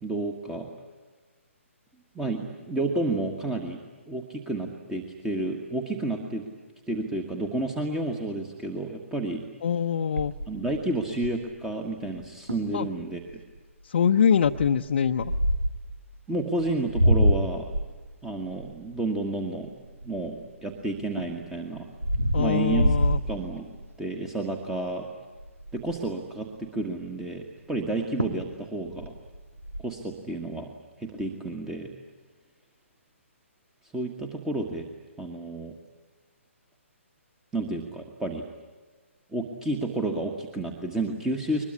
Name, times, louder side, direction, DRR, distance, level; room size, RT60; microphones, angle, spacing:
voice 1, 0.0-0.7 2.1-3.8 4.1-6.5 6.9-9.4 10.5-13.4 16.3-17.7 18.2-19.7 20.0-21.9 22.3-22.9 23.3-23.7 24.0-25.1 25.7-29.1 29.8-30.7 31.0-31.9 33.8-34.9 35.2-35.7 37.5-38.4 39.3-41.7, right 2 dB, 5° right, 4 dB, 1.5 m, -31 dB
voice 2, 9.6-10.3 12.7-12.9 13.8-15.3 22.3-23.2, left 7 dB, 50° left, 2 dB, 0.8 m, -23 dB
sound 1, 10.2-11.6 12.2-12.3 12.5-12.8 13.3-13.6 14.4-15.9 16.6-20.5 20.9-24.0 24.4-24.7 25.0-25.1 25.4-26.1 27.8-27.9 28.2-28.5 28.8-29.8, equal, 80° right, 2.4 m, -27 dB
22.0 x 21.5 x 9.8 m, 1.3 s
figure-of-eight pair, 130°, 7 cm